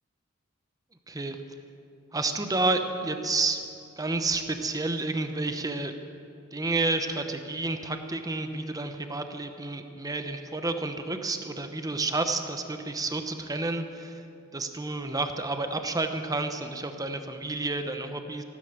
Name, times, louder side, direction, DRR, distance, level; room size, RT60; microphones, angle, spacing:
voice 1, 1.1-1.4 2.1-3.6 4.0-5.9 6.5-14.2 14.5-18.4, right 3 dB, 15° right, 7 dB, 0.9 m, -30 dB
14.0 x 12.5 x 6.6 m, 2.6 s
head